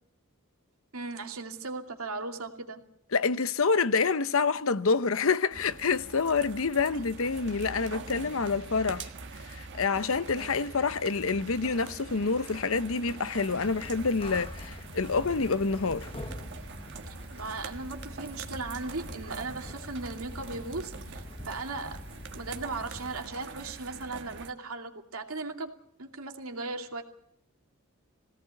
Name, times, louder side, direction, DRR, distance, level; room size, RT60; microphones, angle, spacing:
voice 1, 0.9-2.8 6.9-7.0 17.1-22.0 22.3-25.7 26.0-27.0, right 3 dB, 85° right, 2.6 m, -37 dB
voice 2, 3.1-9.1 9.5-16.1, left 4 dB, 70° left, 0.8 m, -27 dB
sound 1, 5.5-24.5, right 4 dB, 55° right, 1.5 m, -44 dB
sound 2, 13.6-23.3, left 1 dB, 25° left, 1.1 m, -44 dB
21.5 x 17.5 x 8.4 m
head